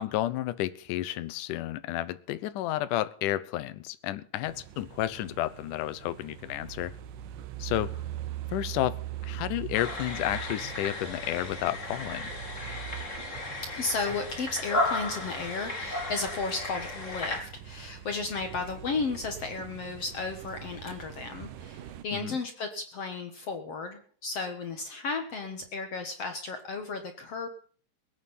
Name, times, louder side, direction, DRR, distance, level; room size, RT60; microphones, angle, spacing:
voice 1, 0.0-6.9 7.6-7.9 8.5-9.0 9.2-12.3 22.1-22.4, left 14 dB, 75° left, 14 dB, 2.3 m, -31 dB
sound 1, 4.4-22.0, right 11 dB, 75° right, 2.6 m, -42 dB
sound 2, 9.7-17.4, left 2 dB, 25° left, 2.8 m, -35 dB
voice 2, 13.6-27.5, left 4 dB, 55° left, 6 dB, 2.2 m, -34 dB
20.5 x 9.3 x 5.5 m, 0.44 s
omnidirectional pair, 3.9 m